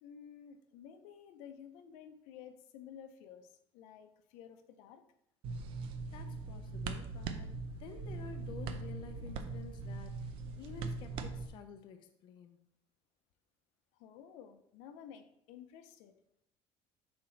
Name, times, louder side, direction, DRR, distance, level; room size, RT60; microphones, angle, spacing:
voice 1, 0.0-5.0 14.0-16.1, left 8 dB, 80° left, 8 dB, 0.6 m, -53 dB
sound 1, 5.4-11.5, right 4 dB, 50° right, 0.5 m, -41 dB
voice 2, 6.1-7.5 7.8-12.6, left 6 dB, 45° left, 6 dB, 0.5 m, -50 dB
5.7 x 4.3 x 4.0 m, 0.76 s
cardioid pair, 165°, 11 cm